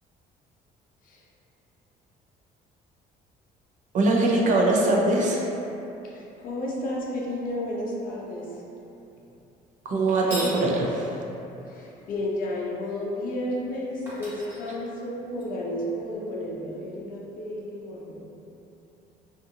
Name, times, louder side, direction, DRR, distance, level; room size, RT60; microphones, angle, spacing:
voice 1, 3.9-5.4 9.8-11.2, right 2 dB, 50° right, -2 dB, 0.5 m, -22 dB
voice 2, 6.0-8.6 11.6-18.2, left 1 dB, 55° left, -3 dB, 0.5 m, -32 dB
sound 1, 10.1-10.6 13.6-13.7 14.1-15.4, right 1 dB, 15° right, 0.9 m, -37 dB
2.5 x 2.5 x 2.7 m, 2.9 s
cardioid pair, 110°, 17 cm